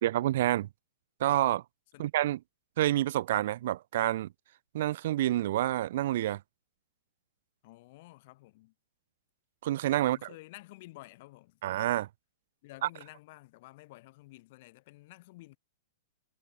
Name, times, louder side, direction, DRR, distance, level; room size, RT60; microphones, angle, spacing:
voice 1, 0.0-0.7 1.2-1.6 2.0-2.4 2.8-4.3 4.7-6.4 9.6-10.2 11.6-12.1, right 14 dB, 55° right, 0.8 m, -28 dB
voice 2, 7.6-8.7 10.0-11.6 12.6-15.6, left 20 dB, 50° left, 5.3 m, -51 dB
figure-of-eight pair, 110°, 0 cm